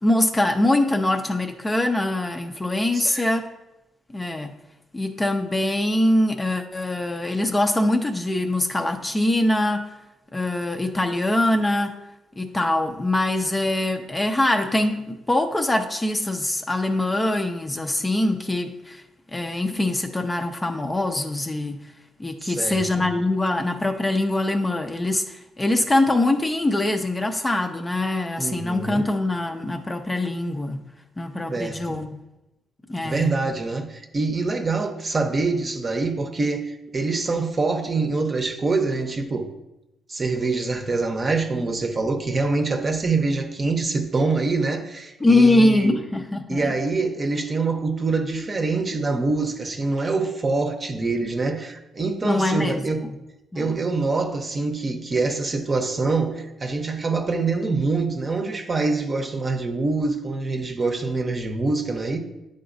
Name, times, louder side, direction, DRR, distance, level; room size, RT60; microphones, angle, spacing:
voice 1, 0.0-3.5 4.1-4.5 4.9-9.8 10.3-12.0 12.4-19.0 19.3-21.8 22.2-30.8 31.2-32.2 32.9-33.3 45.2-46.7 52.2-53.2 53.5-53.8, left 1 dB, 15° left, 5 dB, 0.5 m, -23 dB
voice 2, 2.9-3.2 22.4-23.1 28.4-29.1 31.5-32.0 33.0-39.5 40.1-46.0 46.5-53.0 53.5-62.2, right 3 dB, 35° right, 5 dB, 0.8 m, -25 dB
10.0 x 3.8 x 2.6 m, 0.95 s
cardioid pair, 90°, 0 cm